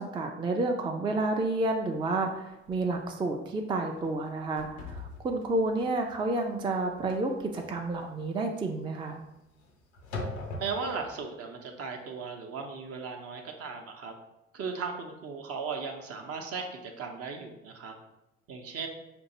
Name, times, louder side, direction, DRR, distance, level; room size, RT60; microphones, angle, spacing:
voice 1, 0.0-9.2, right 2 dB, 15° right, 3 dB, 0.4 m, -30 dB
sound 1, 1.6-1.7 2.1-2.2 2.7-2.9 3.3-3.6 3.9-11.2, left 2 dB, 85° left, 0.6 m, -42 dB
voice 2, 10.6-14.1 14.5-18.0 18.5-18.9, right 5 dB, 45° right, 3 dB, 0.7 m, -37 dB
5.2 x 2.5 x 2.8 m, 0.92 s
figure-of-eight pair, 45°, 33 cm